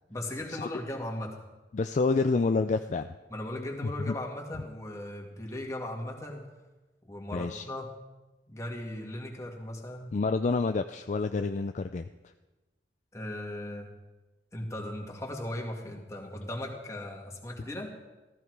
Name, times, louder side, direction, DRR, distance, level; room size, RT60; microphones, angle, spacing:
voice 1, 0.1-1.4 3.3-6.4 7.0-7.9 8.5-10.1 13.1-13.9 14.5-17.9, left 1 dB, 20° left, 0 dB, 2.0 m, -37 dB
voice 2, 1.7-3.1 4.1-4.2 7.3-7.7 10.1-12.1, left 3 dB, 45° left, 8 dB, 0.4 m, -28 dB
15.0 x 13.5 x 4.7 m, 1.1 s
head